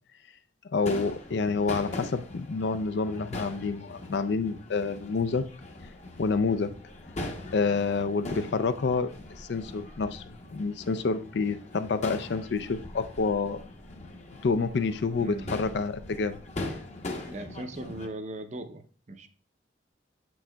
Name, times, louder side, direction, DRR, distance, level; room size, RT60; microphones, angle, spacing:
voice 1, 0.7-5.5 6.2-6.7 7.5-13.6 14.4-16.4, left 4 dB, 65° left, 0.4 m, -28 dB
Crowd / Fireworks, 0.8-18.1, left 2 dB, 40° left, 0.8 m, -41 dB
voice 2, 15.2-15.8 17.3-19.3, right 1 dB, 40° right, 0.6 m, -39 dB
7.3 x 6.2 x 2.2 m
head